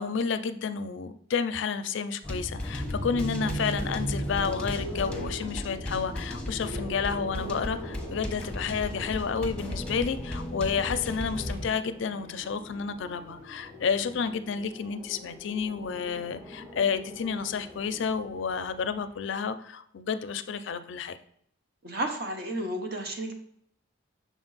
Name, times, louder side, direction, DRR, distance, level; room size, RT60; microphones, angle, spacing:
voice 1, 0.0-21.2, left 6 dB, 65° left, 11 dB, 0.4 m, -30 dB
sound 1, 2.2-11.7, left 1 dB, 5° left, 0.8 m, -36 dB
sound 2, 2.5-14.4 15.7-19.3, right 1 dB, 85° right, 2.2 m, -40 dB
sound 3, 5.4-18.0, left 1 dB, 20° right, 2.6 m, -47 dB
voice 2, 21.8-23.3, right 1 dB, 50° right, 4 dB, 0.9 m, -32 dB
6.1 x 4.4 x 4.0 m, 0.70 s
head